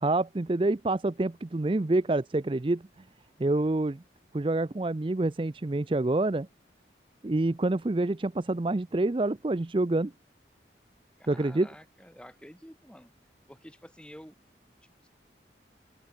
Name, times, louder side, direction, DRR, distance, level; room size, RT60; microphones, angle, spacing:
voice 1, 0.0-2.8 3.4-4.0 4.3-6.5 7.2-10.1 11.3-11.7, right 2 dB, 30° right, 0.5 m, -27 dB
voice 2, 11.2-13.1 13.5-14.4 14.8-15.1, equal, 5° left, 5.6 m, -50 dB
open air
head